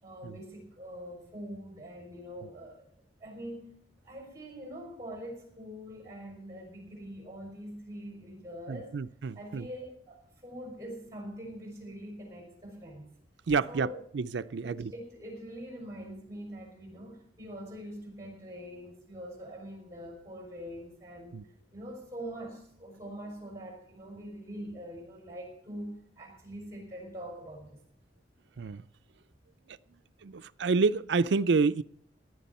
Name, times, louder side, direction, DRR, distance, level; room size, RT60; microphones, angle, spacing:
voice 1, 0.0-2.9 3.2-9.0 9.4-13.1 13.7-14.0 14.6-27.8, equal, 15° right, 1 dB, 5.3 m, -44 dB
voice 2, 8.7-9.7 13.5-13.9 14.1-14.9 21.3-21.4 28.6-28.8 30.2-31.8, right 4 dB, 75° right, 13 dB, 0.5 m, -28 dB
17.5 x 11.0 x 4.3 m, 0.66 s
head